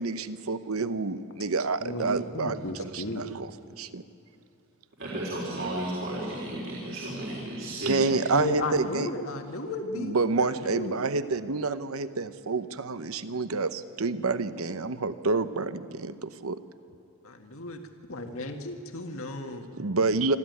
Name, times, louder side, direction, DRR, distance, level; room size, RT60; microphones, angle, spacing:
voice 1, 0.0-3.5 3.8-4.0 7.9-9.1 10.0-16.6 19.8-20.4, right 3 dB, 85° right, 12 dB, 0.9 m, -28 dB
voice 2, 1.8-3.2 8.3-11.4 17.5-17.8 18.1-19.7, left 2 dB, 75° left, 5 dB, 1.8 m, -34 dB
voice 3, 5.0-8.5, right 1 dB, 60° right, -5 dB, 4.0 m, -34 dB
25.5 x 13.5 x 9.5 m, 2.8 s
head